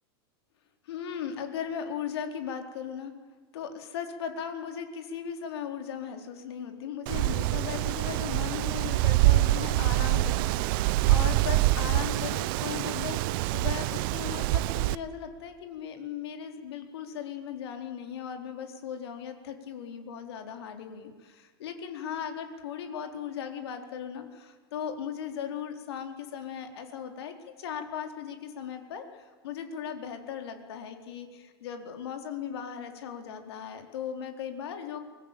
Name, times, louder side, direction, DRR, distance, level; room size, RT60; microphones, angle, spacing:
voice 1, 0.8-3.1 3.5-35.0, left 8 dB, 80° left, 5 dB, 4.1 m, -38 dB
Wind, 7.1-14.9, right 16 dB, 60° right, 0.8 m, -25 dB
25.0 x 19.5 x 9.0 m, 1.5 s
supercardioid pair, 135°, 13 cm